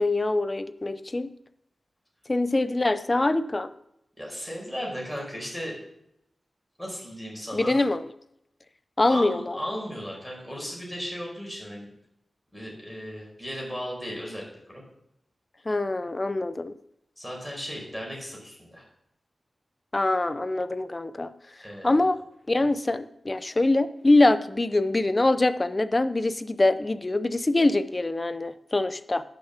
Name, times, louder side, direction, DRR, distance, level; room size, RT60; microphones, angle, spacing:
voice 1, 0.0-1.3 2.3-3.7 7.5-8.0 9.0-9.6 15.7-16.7 19.9-21.3 21.8-22.2 22.5-29.2, left 2 dB, 30° left, 13 dB, 0.6 m, -24 dB
voice 2, 4.2-5.8 6.8-7.8 9.1-11.9 12.5-14.4 14.7-14.8 17.2-18.8 21.6-22.0, equal, ahead, -3 dB, 5.1 m, -36 dB
11.5 x 6.8 x 7.2 m, 0.80 s
wide cardioid pair, 100°, 0 cm